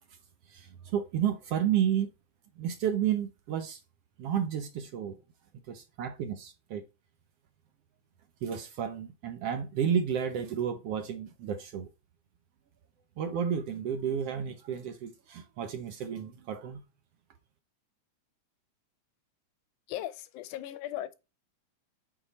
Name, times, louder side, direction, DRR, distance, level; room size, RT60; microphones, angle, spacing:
voice 1, 0.5-2.1 2.6-3.8 4.2-5.2 5.7-6.8 8.4-11.9 13.2-16.8, right 8 dB, 70° right, 1.5 m, -31 dB
voice 2, 19.9-21.1, left 13 dB, 85° left, 2.2 m, -37 dB
7.8 x 4.4 x 4.1 m
omnidirectional pair, 3.4 m